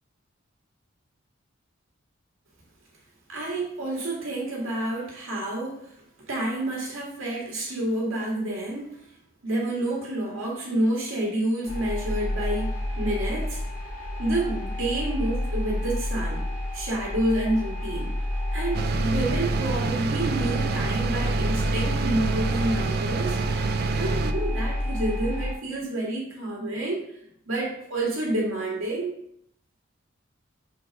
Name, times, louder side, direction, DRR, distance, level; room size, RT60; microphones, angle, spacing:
voice 1, 3.3-6.0 6.3-9.1 9.4-13.6 14.2-16.4 16.7-18.1 18.5-23.4 24.0-27.0 27.5-29.2, right 1 dB, 75° right, -3 dB, 2.0 m, -29 dB
sound 1, 11.7-25.5, left 1 dB, 40° left, 1.5 m, -30 dB
sound 2, 18.7-24.3, right 4 dB, 50° right, 0.3 m, -27 dB
4.5 x 4.0 x 5.2 m, 0.71 s
head